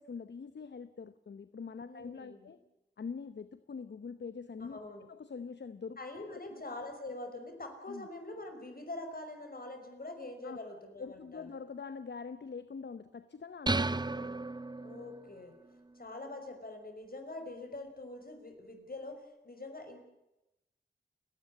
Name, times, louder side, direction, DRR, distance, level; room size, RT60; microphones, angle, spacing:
voice 1, 0.0-2.6 3.0-4.8 5.1-6.0 6.3-6.6 7.9-8.1 10.4-10.6 11.0-14.0, left 5 dB, 70° left, 12 dB, 0.9 m, -44 dB
voice 2, 1.8-2.6 4.6-5.1 6.0-11.4 14.0-14.4 14.8-15.5 15.9-19.2 19.4-20.0, left 2 dB, 50° left, 5 dB, 5.8 m, -44 dB
sound 1, 13.7-15.3, right 2 dB, 25° right, 0.7 m, -33 dB
30.0 x 10.5 x 9.6 m, 0.93 s
cardioid pair, 45°, 19 cm